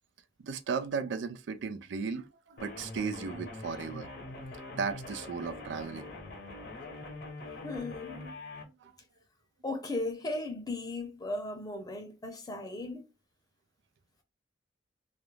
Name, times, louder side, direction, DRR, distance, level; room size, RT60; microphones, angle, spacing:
voice 1, 0.4-4.1 4.7-6.1 8.4-8.5 8.8-8.9, right 5 dB, 90° right, 0.4 m, -36 dB
sound 1, 2.6-8.6, left 2 dB, 60° left, 0.7 m, -44 dB
voice 2, 7.6-8.3 9.6-13.0, left 2 dB, 20° left, 0.6 m, -36 dB
2.4 x 2.0 x 3.1 m
head